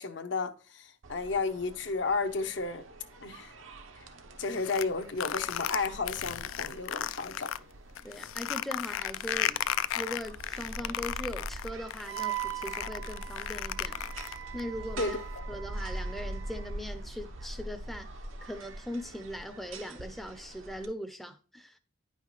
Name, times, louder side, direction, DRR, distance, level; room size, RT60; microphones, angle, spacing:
voice 1, 0.0-2.8 3.2-3.5 4.4-7.5 15.0-15.4, left 4 dB, 70° left, 0.7 m, -33 dB
sound 1, 1.0-20.8, right 1 dB, 90° right, 0.9 m, -44 dB
sound 2, 4.4-7.6 8.0-14.6, left 11 dB, 90° left, 0.3 m, -34 dB
voice 2, 8.0-9.6 9.9-14.1 14.5-15.2 15.5-18.1 18.4-21.8, equal, ahead, 0.4 m, -40 dB
Wind instrument woodwind instrument, 12.1-16.7, right 16 dB, 70° right, 0.5 m, -41 dB
9.5 x 5.6 x 3.0 m
head